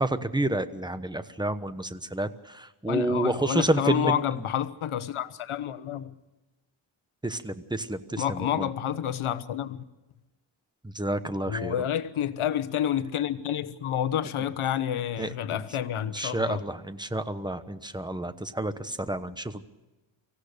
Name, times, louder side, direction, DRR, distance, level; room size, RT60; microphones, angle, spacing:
voice 1, 0.0-4.2 7.2-8.7 10.8-11.7 15.2-15.6 16.0-19.5, right 1 dB, 10° right, 1.0 m, -29 dB
voice 2, 2.9-6.1 8.2-9.8 11.5-16.6, left 10 dB, 85° left, 1.1 m, -29 dB
24.5 x 16.0 x 6.7 m
wide cardioid pair, 125°, 48 cm